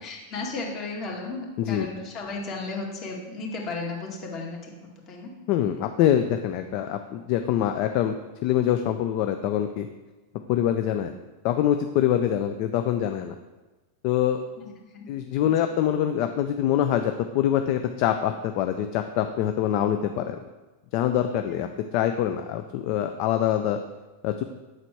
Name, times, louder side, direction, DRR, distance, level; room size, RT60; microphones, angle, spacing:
voice 1, 0.0-5.3 12.5-12.6 14.6-15.1 21.4-21.6, left 3 dB, 40° left, -1 dB, 2.0 m, -35 dB
voice 2, 5.5-8.2 8.4-9.9 10.5-11.1 11.4-13.3 14.0-14.4 15.1-20.4 20.9-21.7 21.9-23.8 24.2-24.4, left 10 dB, 55° left, 7 dB, 0.4 m, -24 dB
7.8 x 4.1 x 4.5 m, 1.2 s
hypercardioid pair, 110°, 0 cm